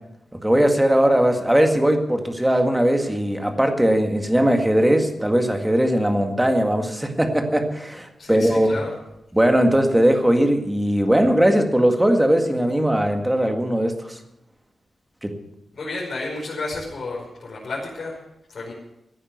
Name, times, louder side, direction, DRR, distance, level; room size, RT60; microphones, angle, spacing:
voice 1, 0.3-8.7 9.3-14.2 15.2-15.4, right 1 dB, 5° right, 4 dB, 1.9 m, -19 dB
voice 2, 8.2-8.9 15.7-18.2 18.5-18.7, left 2 dB, 50° left, -6 dB, 5.5 m, -31 dB
15.5 x 9.7 x 8.1 m, 0.84 s
wide cardioid pair, 145°, 0 cm